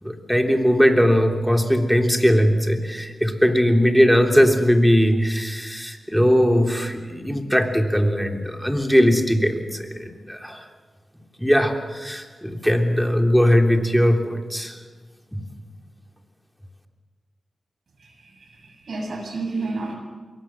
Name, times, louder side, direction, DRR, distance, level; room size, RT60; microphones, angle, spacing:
voice 1, 0.0-10.6 11.4-14.8 15.3-15.4, equal, ahead, 3 dB, 3.3 m, -19 dB
voice 2, 18.0-19.9, right 3 dB, 70° right, 2 dB, 7.1 m, -31 dB
25.5 x 22.5 x 7.5 m, 1.5 s
cardioid pair, 65°, 0 cm